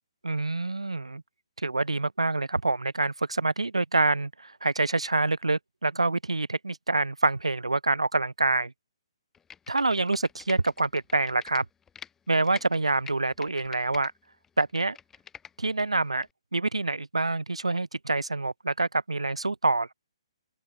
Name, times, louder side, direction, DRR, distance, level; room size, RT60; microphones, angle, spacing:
voice 1, 0.2-1.2 1.6-8.7 9.7-11.7 12.3-14.1 14.6-15.0 15.6-16.3 16.5-19.9, right 2 dB, 85° right, 7.0 m, -26 dB
Computer keyboard, 9.3-12.1 12.4-14.1 14.4-15.8 16.2-16.3, left 7 dB, 10° left, 4.5 m, -45 dB
open air
figure-of-eight pair, 135°, 3 cm